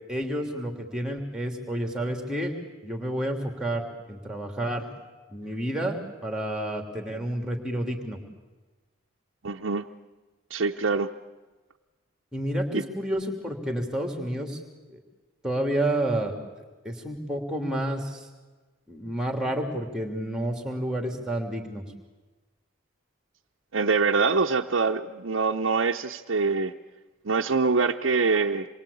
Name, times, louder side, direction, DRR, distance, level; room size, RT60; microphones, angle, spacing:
voice 1, 0.1-2.5 2.8-4.8 5.3-8.2 12.3-14.6 14.9-15.0 15.4-16.3 16.8-18.3 18.9-21.8, right 1 dB, 5° right, 4 dB, 2.8 m, -30 dB
voice 2, 9.4-9.9 10.5-11.1 12.7-12.9 23.7-26.7 27.2-28.7, right 4 dB, 75° right, 0 dB, 0.8 m, -24 dB
27.0 x 22.0 x 8.5 m, 1.2 s
head